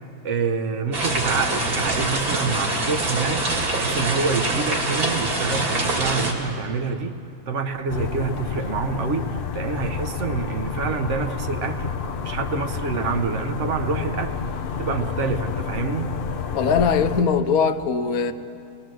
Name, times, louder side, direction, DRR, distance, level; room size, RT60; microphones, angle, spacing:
voice 1, 0.2-3.5 3.8-7.2 7.5-12.0 12.2-14.4 14.8-16.1, right 4 dB, 55° right, 1.2 m, -27 dB
sound 1, 0.9-6.3, right 2 dB, 75° right, 3.1 m, -24 dB
sound 2, 7.9-17.2, left 6 dB, 50° left, 0.7 m, -29 dB
voice 2, 16.5-18.3, left 6 dB, 70° left, 1.3 m, -20 dB
22.5 x 20.5 x 7.7 m
omnidirectional pair, 1.6 m